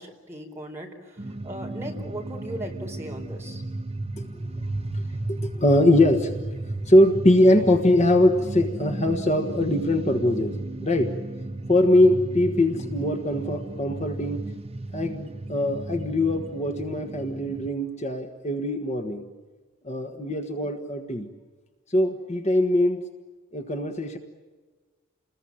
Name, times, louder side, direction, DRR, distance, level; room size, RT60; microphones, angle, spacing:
voice 1, 0.0-3.6, right 1 dB, 15° right, 0 dB, 4.5 m, -38 dB
sound 1, 1.2-17.7, right 2 dB, 30° right, 0.9 m, -34 dB
voice 2, 5.3-6.6 6.8-11.2 11.7-14.5 14.9-19.3 19.8-21.3 21.9-23.0 23.5-24.2, left 1 dB, 35° left, 5 dB, 1.5 m, -22 dB
30.0 x 21.0 x 8.9 m, 1.4 s
head